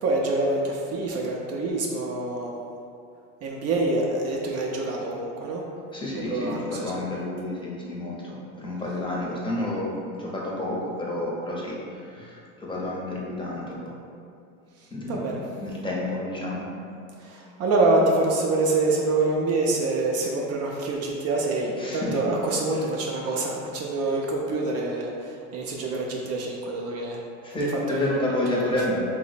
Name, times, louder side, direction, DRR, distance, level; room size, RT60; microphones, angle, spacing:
voice 1, 0.0-2.8 3.4-5.6 6.1-7.0 14.8-15.4 17.2-27.2 27.6-28.7, right 2 dB, 45° right, -1 dB, 0.4 m, -26 dB
voice 2, 5.9-13.8 14.9-15.4 15.6-16.7 21.8-22.2 27.4-29.0, left 1 dB, 15° left, -5 dB, 0.6 m, -30 dB
2.8 x 2.1 x 4.0 m, 2.5 s
supercardioid pair, 105°, 34 cm